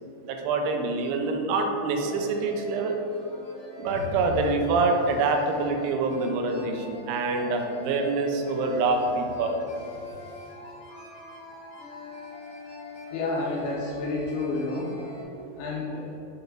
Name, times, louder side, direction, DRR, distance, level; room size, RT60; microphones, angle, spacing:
voice 1, 0.2-3.0 3.8-9.6, right 3 dB, 85° right, 3 dB, 3.0 m, -26 dB
sound 1, 0.6-0.7 1.0-1.1 1.5-1.6 1.9-15.2, left 1 dB, 70° left, 1.3 m, -43 dB
sound 2, 3.8-5.7 8.5-10.5, equal, 65° right, 2.6 m, -41 dB
voice 2, 13.1-14.9 15.6-16.2, left 3 dB, 85° left, -4 dB, 2.2 m, -30 dB
6.9 x 4.0 x 3.4 m, 2.8 s
omnidirectional pair, 5.3 m